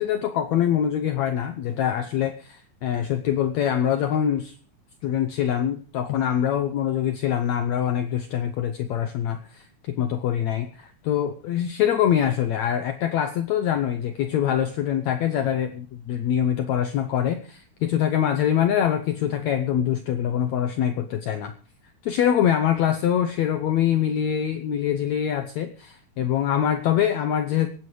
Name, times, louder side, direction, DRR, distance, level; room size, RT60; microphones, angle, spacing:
voice 1, 0.0-4.6 5.0-21.5 22.0-27.7, left 10 dB, 80° left, 8 dB, 1.6 m, -24 dB
25.0 x 9.5 x 3.2 m, 0.43 s
omnidirectional pair, 4.2 m